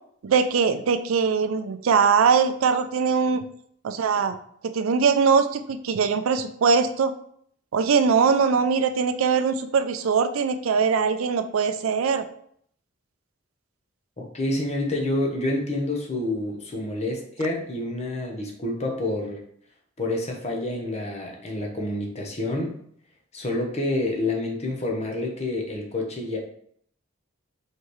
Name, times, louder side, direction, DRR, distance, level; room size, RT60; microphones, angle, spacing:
voice 1, 0.2-3.4 3.8-4.4 4.6-7.1 7.7-12.2, right 5 dB, 90° right, 9 dB, 0.4 m, -21 dB
voice 2, 14.2-19.4 20.0-22.8 23.3-26.4, left 1 dB, 35° left, 1 dB, 0.8 m, -28 dB
4.7 x 3.3 x 3.1 m, 0.65 s
head